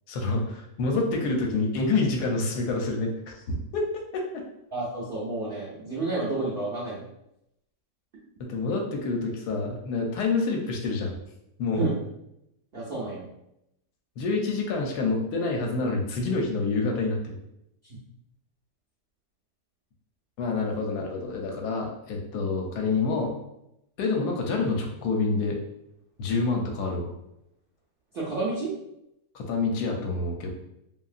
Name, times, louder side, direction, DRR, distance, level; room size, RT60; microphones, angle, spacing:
voice 1, 0.1-3.1 3.5-3.8 8.4-11.1 11.6-11.9 14.2-17.4 20.4-23.3 24.0-25.6 26.2-27.1 29.3-30.5, left 3 dB, 80° left, 1 dB, 1.1 m, -27 dB
voice 2, 4.7-7.1 11.8-11.9 12.7-13.3 17.8-18.0 28.1-28.7, right 3 dB, 75° right, -6 dB, 0.5 m, -30 dB
2.8 x 2.7 x 2.4 m, 0.83 s
omnidirectional pair, 1.8 m